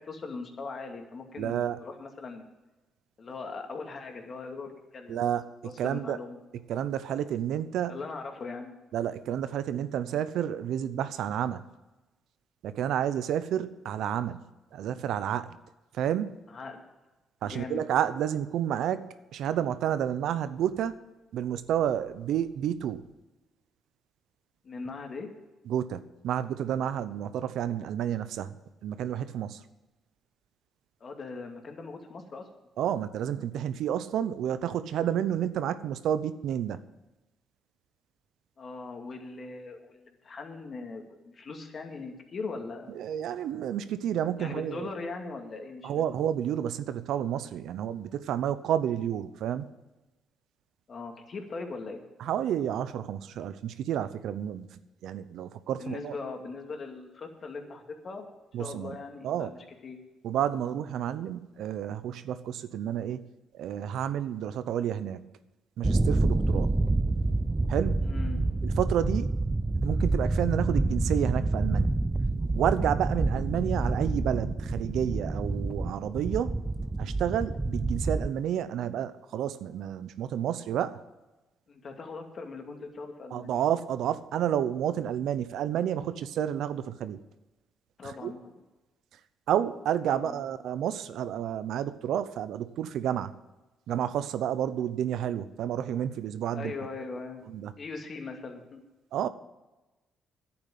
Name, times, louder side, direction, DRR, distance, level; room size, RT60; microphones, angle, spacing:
voice 1, 0.1-2.5 3.2-5.3 5.6-6.4 7.9-8.7 16.5-16.8 17.4-17.8 24.6-25.3 31.0-32.4 38.6-42.9 44.4-46.1 50.9-52.0 55.8-58.3 58.6-60.0 68.0-68.5 81.7-83.6 88.0-88.5 90.1-90.4 96.5-97.4 97.8-98.8, left 4 dB, 45° left, 3 dB, 2.3 m, -40 dB
voice 2, 1.4-1.8 5.1-5.4 5.8-6.2 6.7-8.0 8.9-11.6 12.6-14.4 14.7-15.6 15.9-16.3 17.4-19.1 19.3-21.0 21.3-23.0 25.7-28.6 28.8-29.6 32.8-36.8 42.9-44.9 45.8-49.7 52.2-54.7 55.0-56.1 58.5-59.0 59.2-59.5 60.2-63.3 63.5-65.2 65.8-66.7 67.7-68.1 68.6-69.3 69.8-71.9 72.3-76.5 77.0-81.0 83.3-87.2 88.0-88.3 89.5-93.3 93.9-96.7 97.5-97.7 99.1-99.3, right 10 dB, 80° right, 13 dB, 0.8 m, -30 dB
sound 1, 65.8-78.3, right 2 dB, 20° right, 0.6 m, -28 dB
10.5 x 8.8 x 8.7 m, 1.1 s
cardioid pair, 90°, 0 cm